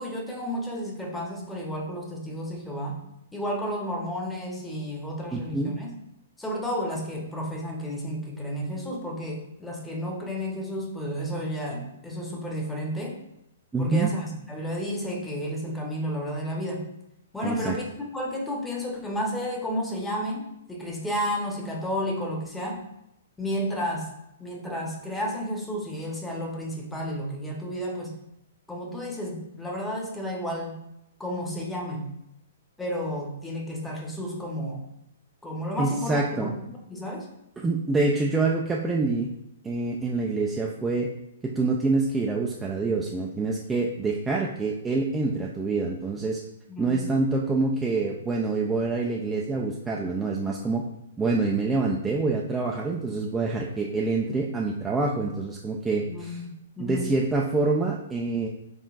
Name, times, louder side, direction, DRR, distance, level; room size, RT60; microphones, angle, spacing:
voice 1, 0.0-3.0 3.3-5.9 6.4-13.2 13.8-16.8 17.3-22.8 23.4-24.1 24.4-28.1 28.7-30.7 31.2-32.1 32.8-34.8 35.4-37.3 46.7-47.0 56.1-57.0, equal, 10° left, -1 dB, 0.9 m, -32 dB
voice 2, 5.3-5.7 13.7-14.1 17.4-17.8 35.8-36.5 37.6-39.3 39.6-41.1 41.4-46.4 46.8-50.8 51.2-56.4 56.8-58.5, right 3 dB, 10° right, -1 dB, 0.4 m, -26 dB
4.0 x 3.7 x 2.5 m, 0.83 s
figure-of-eight pair, 120°, 0 cm